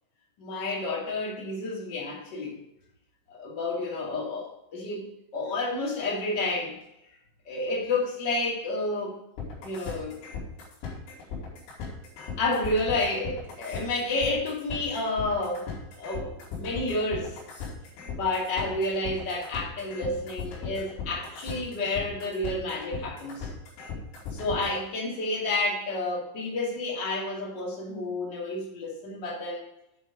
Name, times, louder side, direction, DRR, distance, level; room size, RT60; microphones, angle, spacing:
voice 1, 0.4-2.6 3.3-6.7 7.5-9.2 9.6-10.1 12.4-15.7 15.9-16.3 16.6-17.4 18.1-23.5 24.3-29.6, left 2 dB, 35° left, -3 dB, 1.9 m, -30 dB
sound 1, 9.4-24.8, left 6 dB, 75° left, 5.3 m, -37 dB
9.8 x 5.1 x 5.6 m, 0.86 s
omnidirectional pair, 5.6 m